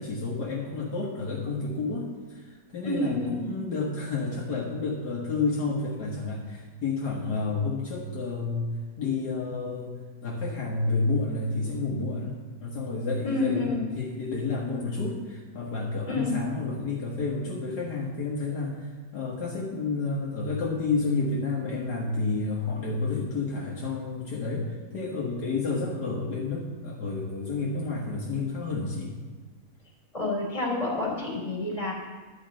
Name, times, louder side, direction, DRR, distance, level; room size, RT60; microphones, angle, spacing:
voice 1, 0.0-8.7 9.0-29.1, left 3 dB, 65° left, -4 dB, 2.0 m, -30 dB
voice 2, 2.8-3.5 13.2-13.8 16.1-16.3 30.1-31.9, left 2 dB, 15° left, -4 dB, 3.0 m, -28 dB
11.5 x 5.1 x 7.6 m, 1.4 s
omnidirectional pair, 1.9 m